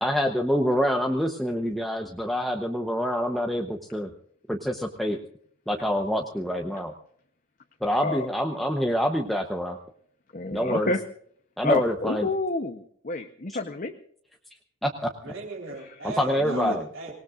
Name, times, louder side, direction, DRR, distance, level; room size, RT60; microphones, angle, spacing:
voice 1, 0.0-4.1 4.5-5.2 5.7-6.9 7.8-9.8 10.5-10.9 11.6-12.3 14.8-15.1 16.0-16.8, equal, ahead, 2 dB, 0.9 m, -26 dB
voice 2, 7.9-8.3 10.3-11.0 11.6-13.9 15.8-15.9 16.4-16.8, left 3 dB, 35° left, 6 dB, 0.9 m, -29 dB
voice 3, 15.2-17.2, right 3 dB, 60° right, -4 dB, 4.0 m, -37 dB
25.5 x 19.0 x 2.5 m, 0.63 s
head